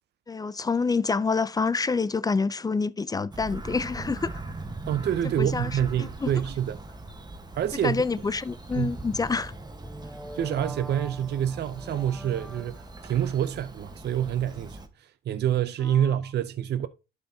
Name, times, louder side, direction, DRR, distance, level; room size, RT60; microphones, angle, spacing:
voice 1, 0.3-4.4 5.4-6.3 7.8-9.5 15.8-16.1, left 4 dB, 20° left, 0.3 m, -27 dB
Bird vocalization bird call bird song, 3.3-14.9, right 2 dB, 20° right, 1.1 m, -41 dB
voice 2, 4.9-6.8 7.6-8.0 8.7-8.9 10.3-16.9, right 10 dB, 60° right, 0.5 m, -27 dB
sound 1, 8.7-13.1, right 1 dB, ahead, 0.8 m, -43 dB
11.5 x 4.4 x 2.7 m
cardioid pair, 90°, 20 cm